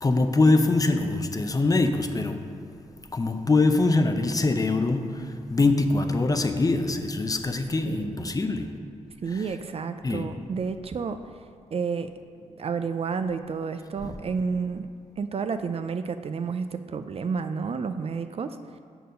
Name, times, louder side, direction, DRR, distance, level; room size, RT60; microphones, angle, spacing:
voice 1, 0.0-2.4 3.1-8.7 10.0-10.3 14.0-14.1, left 3 dB, 30° left, 6 dB, 0.6 m, -23 dB
voice 2, 7.9-8.4 9.2-11.2 11.7-12.1 12.6-14.9 15.2-18.6, right 5 dB, 50° right, 9 dB, 0.4 m, -30 dB
6.6 x 4.6 x 6.3 m, 2.4 s
cardioid pair, 80°, 13 cm